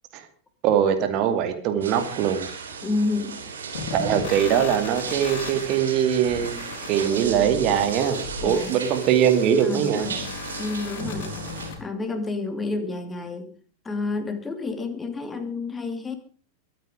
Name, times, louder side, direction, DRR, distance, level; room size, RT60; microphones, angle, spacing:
voice 1, 0.6-2.5 3.9-6.6 6.9-10.1, right 9 dB, 40° right, 7 dB, 2.6 m, -22 dB
sound 1, 1.8-11.7, right 5 dB, 65° right, 3.8 m, -36 dB
voice 2, 2.8-3.4 3.7-3.8 8.4-8.8 9.6-10.2 10.6-11.4 11.8-13.5 13.8-16.2, left 3 dB, 15° left, 8 dB, 2.6 m, -29 dB
sound 2, 3.7-11.7, left 5 dB, 55° left, 4.6 m, -36 dB
22.5 x 9.4 x 5.0 m, 0.42 s
figure-of-eight pair, 90°, 0 cm